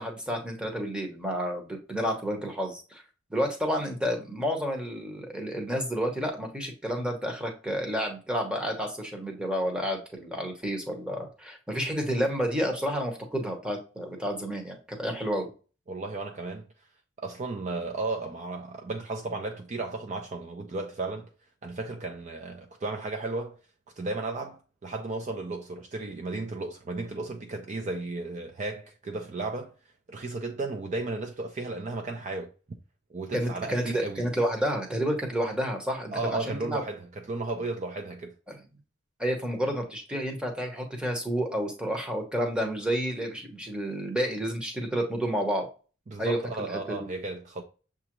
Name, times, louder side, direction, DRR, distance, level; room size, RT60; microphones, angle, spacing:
voice 1, 0.0-3.0 3.3-15.5 33.3-36.8 38.5-38.6 39.2-45.7 46.2-47.1, equal, 5° right, 0.9 m, -30 dB
voice 2, 15.9-16.6 17.2-21.3 21.6-23.6 24.0-29.7 30.1-32.5 33.1-34.2 36.1-38.3 46.1-47.6, right 3 dB, 35° right, 0.5 m, -34 dB
6.7 x 2.4 x 3.0 m
head